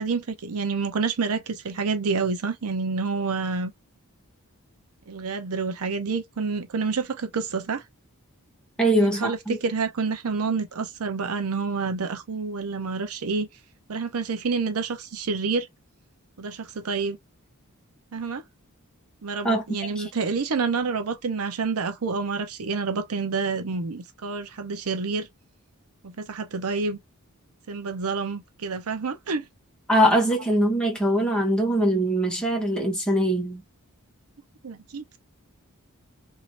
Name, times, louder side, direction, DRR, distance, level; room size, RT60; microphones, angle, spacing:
voice 1, 0.0-3.7 5.1-7.8 8.9-13.5 13.9-15.7 16.4-17.2 18.1-18.4 19.2-25.3 26.0-27.0 27.7-29.5 34.6-35.2, right 4 dB, 75° right, 0.6 m, -28 dB
voice 2, 8.8-9.6 19.4-19.6 20.0-20.1 29.9-33.6, equal, 5° left, 1.1 m, -22 dB
3.0 x 2.8 x 2.8 m
head